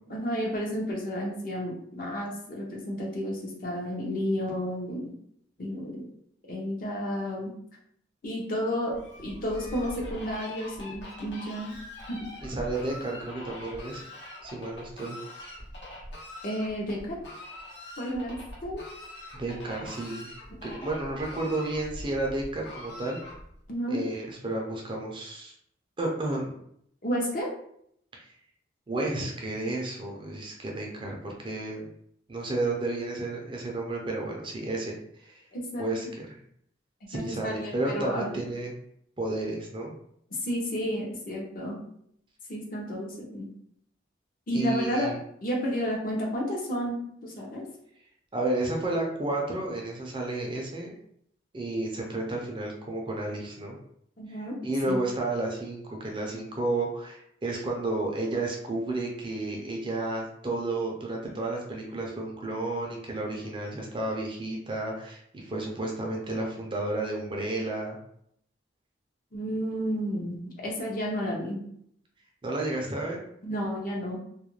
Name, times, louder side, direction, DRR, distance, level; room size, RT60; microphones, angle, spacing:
voice 1, 0.1-5.1 5.6-6.1 6.5-7.5 8.2-11.8 12.1-12.3 16.4-17.2 18.0-18.3 18.6-18.9 23.7-24.1 27.0-27.5 35.5-36.1 37.1-38.3 40.4-41.8 42.5-43.5 44.5-45.1 45.4-47.6 54.2-54.6 54.9-55.0 69.3-71.6 73.4-74.2, equal, 50° left, -2 dB, 0.7 m, -31 dB
Fowl, 8.9-23.7, left 1 dB, 75° left, 0.9 m, -43 dB
voice 2, 12.4-14.0 14.4-15.2 19.3-20.3 20.6-23.2 23.9-25.5 26.0-26.4 28.1-28.3 28.9-31.8 32.3-35.4 35.8-36.3 37.1-38.7 39.2-39.9 44.5-45.2 48.3-50.9 51.5-53.8 54.6-68.0 72.4-73.2, right 2 dB, 25° right, 0 dB, 0.4 m, -32 dB
2.4 x 2.1 x 3.0 m, 0.70 s
head